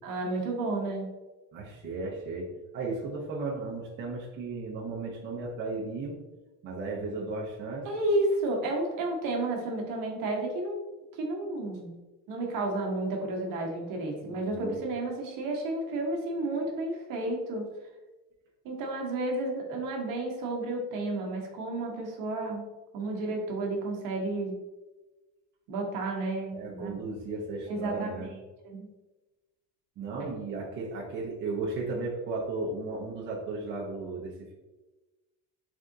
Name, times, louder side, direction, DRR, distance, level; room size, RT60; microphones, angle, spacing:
voice 1, 0.0-1.1 7.8-10.8 11.1-11.9 12.3-17.7 18.6-22.7 22.9-24.6 25.7-26.9 27.7-28.4 28.6-28.9, right 2 dB, 55° right, 1 dB, 1.0 m, -31 dB
voice 2, 1.5-2.5 2.7-6.2 6.6-7.9 14.2-14.8 26.5-28.3 30.0-34.5, right 3 dB, 30° right, -4 dB, 0.6 m, -35 dB
3.6 x 3.4 x 2.6 m, 1.1 s
cardioid pair, 155°, 40 cm